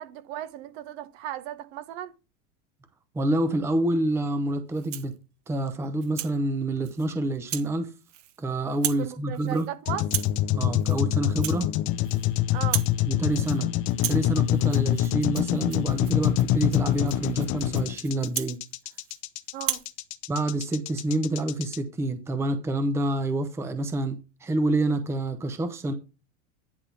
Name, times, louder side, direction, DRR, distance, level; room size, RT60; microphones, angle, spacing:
voice 1, 0.0-2.1 9.0-10.0 12.5-12.8 19.5-19.8, right 13 dB, 55° right, 1.1 m, -36 dB
voice 2, 3.1-5.1 5.5-7.9 8.4-9.7 10.5-11.7 13.0-13.7 14.1-18.6 20.3-25.9, right 1 dB, 5° right, 0.7 m, -27 dB
Rattle (instrument), 4.7-5.2 5.7-6.4 6.8-7.1 7.5-7.7 8.0-8.4 8.7-9.1 9.3-9.7 10.0-10.4 10.8-11.0 11.3-12.3 12.6-13.0 13.3-13.6 13.9-19.2 19.6-19.9, right 13 dB, 90° right, 0.9 m, -35 dB
sound 1, 9.9-21.8, left 12 dB, 35° left, 0.6 m, -25 dB
10.5 x 3.6 x 5.8 m
supercardioid pair, 145°, 36 cm